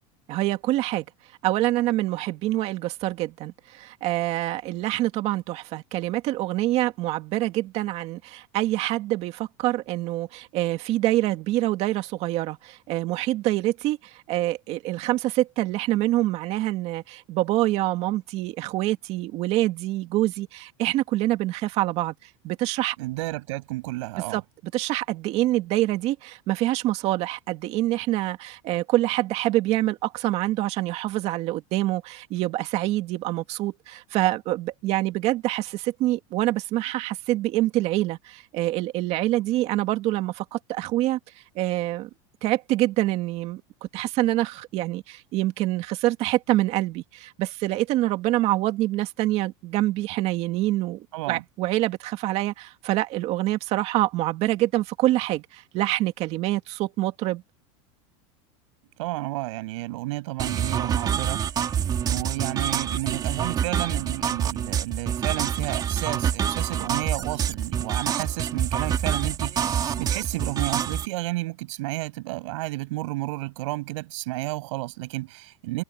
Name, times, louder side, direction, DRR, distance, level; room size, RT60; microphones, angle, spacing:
voice 1, 0.3-1.1 1.4-23.0 24.2-41.2 41.6-42.1 42.4-57.4, right 16 dB, 40° right, 2.3 m, -26 dB
voice 2, 23.0-24.4 51.1-51.4 59.0-61.4 62.1-75.8, right 21 dB, 70° right, 7.5 m, -31 dB
sound 1, 60.4-71.1, right 8 dB, 25° right, 3.5 m, -26 dB
supercardioid pair, 165°, 16 cm